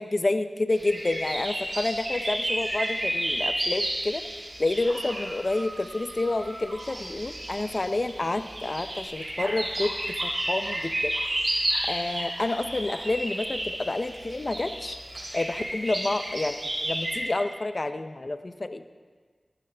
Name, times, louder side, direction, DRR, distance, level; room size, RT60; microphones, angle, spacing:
voice 1, 0.0-4.2 4.6-11.1 11.9-15.0 15.3-18.9, left 2 dB, 45° left, 10 dB, 0.5 m, -29 dB
sound 1, 0.7-17.2, right 1 dB, 60° right, 4.0 m, -32 dB
14.0 x 12.0 x 3.4 m, 1.5 s
wide cardioid pair, 65°, 0 cm